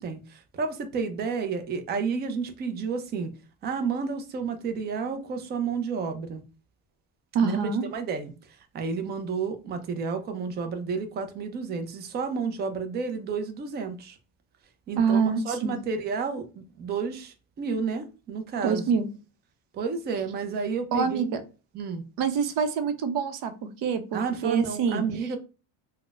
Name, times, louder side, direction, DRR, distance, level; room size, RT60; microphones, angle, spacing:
voice 1, 0.0-3.3 3.6-6.4 7.4-8.3 8.7-14.2 14.9-18.9 19.7-21.3 21.7-22.0 24.1-25.4, right 5 dB, 25° right, 0.3 m, -31 dB
voice 2, 7.3-7.9 15.0-15.8 18.6-19.1 20.9-21.4 22.2-25.1, right 6 dB, 60° right, 0.7 m, -26 dB
3.8 x 2.1 x 2.3 m
cardioid pair, 140°, 47 cm